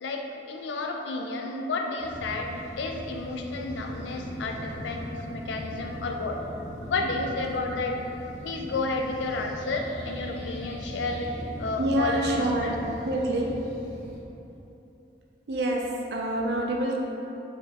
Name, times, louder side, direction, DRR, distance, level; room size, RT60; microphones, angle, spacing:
voice 1, 0.0-6.4 6.9-8.0 8.4-11.3 11.6-12.7, left 3 dB, 90° left, 3 dB, 0.4 m, -31 dB
sound 1, 2.0-14.2, equal, 15° left, 1.3 m, -39 dB
voice 2, 11.8-12.8 13.0-13.5 15.5-17.0, right 1 dB, 70° right, -1 dB, 0.4 m, -27 dB
4.0 x 3.2 x 2.8 m, 3.0 s
head